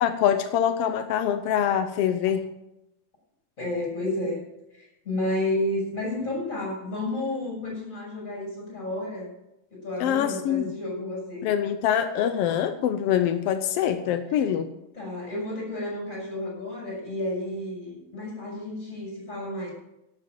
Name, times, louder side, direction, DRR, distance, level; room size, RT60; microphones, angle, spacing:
voice 1, 0.0-2.5 10.0-10.7 11.4-14.7, left 9 dB, 80° left, 9 dB, 1.3 m, -24 dB
voice 2, 3.6-4.4 4.7-9.3 9.7-11.5 12.8-12.9 14.3-14.5 14.9-19.7, left 1 dB, 25° left, -3 dB, 6.7 m, -31 dB
11.5 x 9.0 x 7.6 m, 0.89 s
omnidirectional pair, 3.6 m